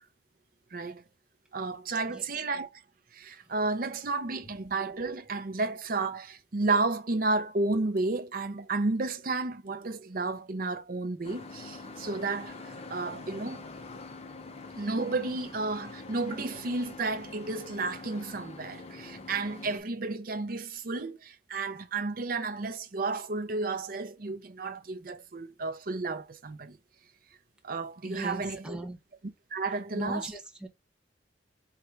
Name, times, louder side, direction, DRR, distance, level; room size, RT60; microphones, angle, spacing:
voice 1, 0.7-1.0 1.5-2.8 3.1-12.5 12.9-13.6 14.8-26.8 27.6-28.8 29.5-30.3, right 3 dB, 50° right, 0.6 m, -32 dB
sound 1, 11.2-19.8, left 3 dB, 35° left, 0.7 m, -44 dB
voice 2, 28.0-29.0 29.9-30.7, right 1 dB, 5° right, 0.8 m, -37 dB
3.7 x 3.1 x 4.5 m
head